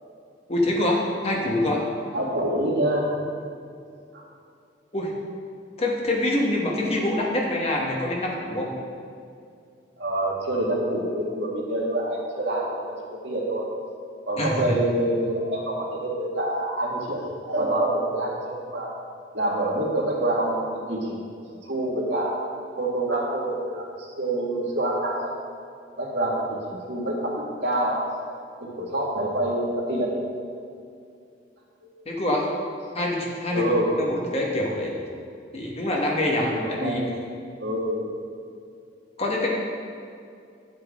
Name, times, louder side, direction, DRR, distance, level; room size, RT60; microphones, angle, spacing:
voice 1, 0.5-1.9 4.9-5.1 5.8-8.7 14.4-14.6 32.0-32.5 32.9-33.6 34.0-34.9 35.5-37.0 39.2-39.5, left 1 dB, 35° left, -2 dB, 1.4 m, -25 dB
voice 2, 2.1-3.1 4.1-4.2 10.0-12.9 13.2-13.6 14.3-18.9 19.3-20.5 20.9-21.2 21.7-22.3 22.8-25.3 26.0-26.4 26.7-28.0 28.6-30.1 33.5-34.0 36.4-37.0 37.6-38.1, right 1 dB, 75° right, -3 dB, 1.8 m, -26 dB
11.0 x 7.7 x 3.7 m, 2.4 s
head